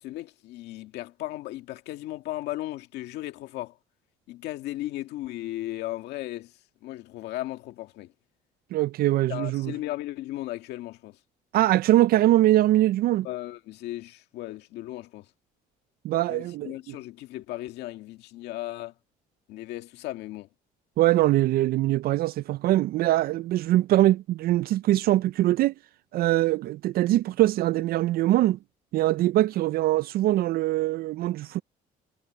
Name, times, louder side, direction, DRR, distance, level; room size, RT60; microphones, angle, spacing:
voice 1, 0.0-3.8 4.3-6.5 6.8-8.1 9.3-11.2 13.2-15.3 16.3-18.9 19.5-20.5, left 15 dB, 85° left, 1.9 m, -36 dB
voice 2, 8.7-9.7 11.5-13.3 16.0-16.9 21.0-25.7 26.1-28.6 28.9-31.6, right 15 dB, 65° right, 0.4 m, -22 dB
cardioid pair, 110°, 17 cm